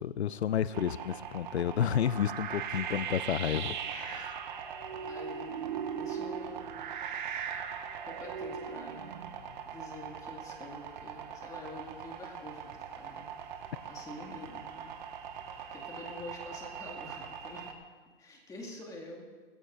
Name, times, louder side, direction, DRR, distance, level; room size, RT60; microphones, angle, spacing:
voice 1, 0.0-4.3, left 9 dB, 90° left, 17 dB, 0.5 m, -31 dB
sound 1, 0.7-17.7, right 7 dB, 50° right, 1.5 m, -40 dB
voice 2, 5.1-6.8 8.0-9.2 9.6-13.3 13.8-15.0 15.7-17.7 18.2-19.3, left 2 dB, 10° left, -1 dB, 2.2 m, -47 dB
21.0 x 15.5 x 2.6 m, 1.4 s
hypercardioid pair, 135°, 32 cm